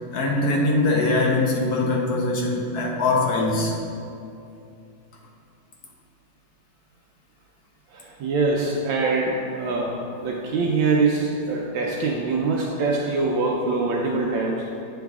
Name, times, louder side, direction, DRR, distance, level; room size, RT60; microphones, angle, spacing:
voice 1, 0.1-3.8, left 2 dB, 60° left, -2 dB, 1.1 m, -22 dB
voice 2, 7.9-14.6, right 3 dB, 80° right, -2 dB, 1.3 m, -24 dB
9.2 x 4.0 x 3.5 m, 2.6 s
omnidirectional pair, 2.2 m